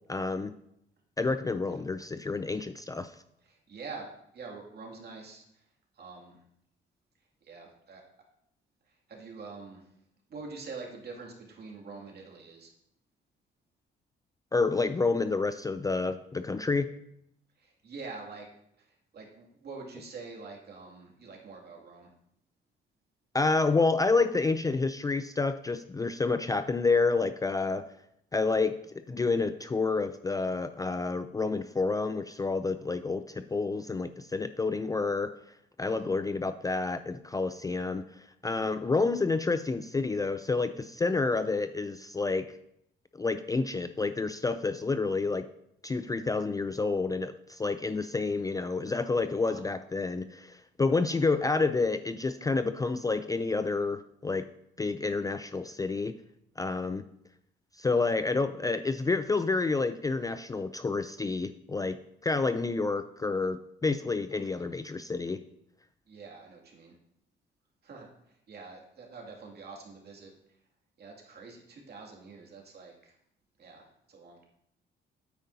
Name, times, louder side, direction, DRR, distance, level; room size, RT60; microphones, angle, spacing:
voice 1, 0.1-0.5 1.2-3.1 14.5-16.9 23.3-27.8 28.3-35.4 35.8-42.5 43.1-45.5 45.8-54.4 54.8-56.1 56.6-57.0 57.8-62.0 62.2-65.4, left 3 dB, 20° left, 10 dB, 0.4 m, -29 dB
voice 2, 3.5-4.1 4.3-5.4 6.0-6.4 7.5-8.0 9.1-9.9 10.3-12.7 17.6-18.5 18.8-22.1 35.9-36.1 38.5-38.7 49.4-49.6 51.1-51.2 62.3-62.5 64.3-64.6 66.1-66.9 67.8-68.1 68.5-70.3 71.0-73.1 73.6-74.4, right 4 dB, 55° right, -1 dB, 2.4 m, -45 dB
9.0 x 8.9 x 2.7 m, 0.75 s
cardioid pair, 90°, 20 cm